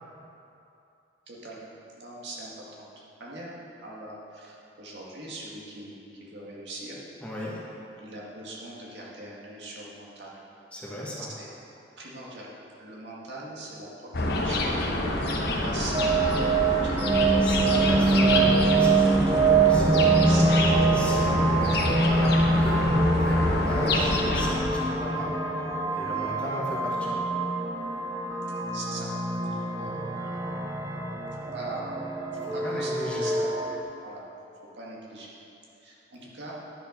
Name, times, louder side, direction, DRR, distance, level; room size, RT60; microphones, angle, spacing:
voice 1, 1.3-1.7 2.0-3.5 3.8-7.0 8.0-10.3 11.2-11.5 12.0-12.5 12.8-14.9 15.2-16.3 16.7-17.1 20.0-21.1 28.7-29.1 29.5-30.0 30.3-30.4 31.5-31.9 32.3-33.5 34.0-34.2 34.8-35.3 35.8-36.5, right 2 dB, 75° right, -4 dB, 2.0 m, -41 dB
voice 2, 7.2-7.6 10.7-11.3 17.4-20.1 20.9-21.7 22.0-25.6 25.9-27.2 29.5-29.7 32.6-33.3, equal, 5° left, -6 dB, 1.7 m, -35 dB
sound 1, 14.1-24.5, left 1 dB, 65° left, 1.1 m, -27 dB
sound 2, 15.9-33.8, right 3 dB, 20° right, 0.8 m, -24 dB
11.0 x 6.9 x 5.2 m, 2.8 s
head